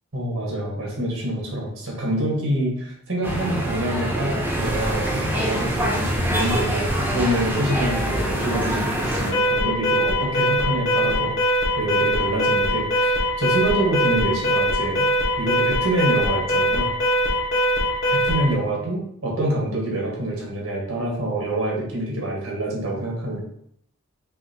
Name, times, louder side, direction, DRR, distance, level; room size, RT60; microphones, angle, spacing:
voice 1, 0.1-15.1 15.4-16.9 18.1-23.4, right 1 dB, 80° right, -2 dB, 1.4 m, -26 dB
sound 1, 3.2-9.3, equal, 10° right, 0.6 m, -24 dB
Alarm, 9.3-18.5, equal, 65° left, 1.4 m, -21 dB
5.8 x 2.6 x 2.9 m, 0.71 s
head